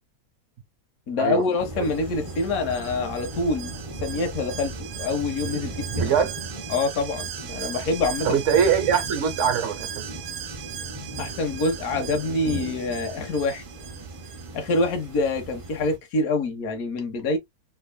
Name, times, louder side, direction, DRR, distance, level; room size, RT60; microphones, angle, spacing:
voice 1, 1.1-6.1 6.7-8.6 11.2-13.6 14.5-17.4, left 3 dB, 65° left, 1.4 m, -26 dB
sound 1, 1.6-16.0, right 2 dB, 20° right, 1.3 m, -37 dB
Alarm, 1.8-15.3 15.6-15.7, right 10 dB, 85° right, 1.2 m, -39 dB
voice 2, 6.0-6.3 8.2-10.0, right 7 dB, 55° right, 1.2 m, -22 dB
3.5 x 3.4 x 2.3 m
omnidirectional pair, 1.7 m